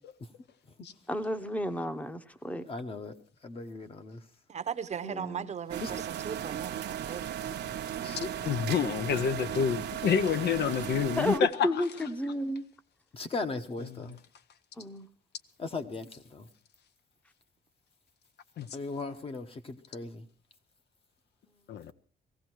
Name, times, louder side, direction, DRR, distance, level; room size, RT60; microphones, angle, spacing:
voice 1, 1.1-2.7 5.0-5.5 11.2-12.6 14.8-15.1, left 1 dB, 10° left, 0.8 m, -32 dB
voice 2, 2.7-3.1 3.4-4.2 5.8-6.0 8.0-8.3 8.8-8.9 13.1-14.1 15.6-16.5 18.7-20.2, left 3 dB, 30° left, 1.0 m, -38 dB
voice 3, 4.5-7.3, right 7 dB, 40° right, 0.8 m, -38 dB
sound 1, 4.9-5.2 5.6-9.8 10.8-11.4, left 2 dB, 55° left, 7.5 m, -62 dB
sound 2, 5.7-11.4, right 10 dB, 75° right, 0.8 m, -36 dB
voice 4, 8.4-11.8 18.6-18.7 21.7-21.9, left 8 dB, 75° left, 0.7 m, -28 dB
17.5 x 15.5 x 4.5 m
cardioid pair, 150°, 18 cm